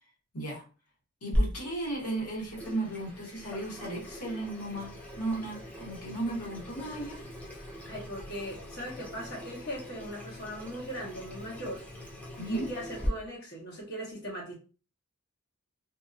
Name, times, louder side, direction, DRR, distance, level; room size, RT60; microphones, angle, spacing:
voice 1, 1.2-7.2 7.6-7.7 12.4-12.7, right 2 dB, 85° left, -3 dB, 1.4 m, -35 dB
Water tap faucet / Sink (filling or washing), 1.3-13.1, equal, 5° left, 0.4 m, -39 dB
voice 2, 7.9-11.9 12.5-14.5, equal, 45° left, -3 dB, 1.1 m, -39 dB
2.6 x 2.6 x 2.4 m, 0.36 s
head